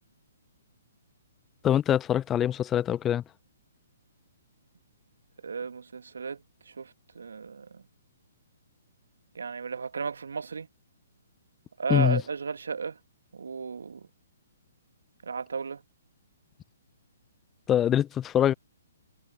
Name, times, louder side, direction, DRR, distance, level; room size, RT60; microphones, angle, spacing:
voice 1, 1.6-3.2 11.9-12.2 17.7-18.5, left 10 dB, 20° left, 0.4 m, -24 dB
voice 2, 5.4-7.8 9.3-10.7 11.8-13.0 13.3-14.1 15.2-15.8, right 5 dB, 75° right, 1.6 m, -34 dB
figure-of-eight pair, 130°, 0 cm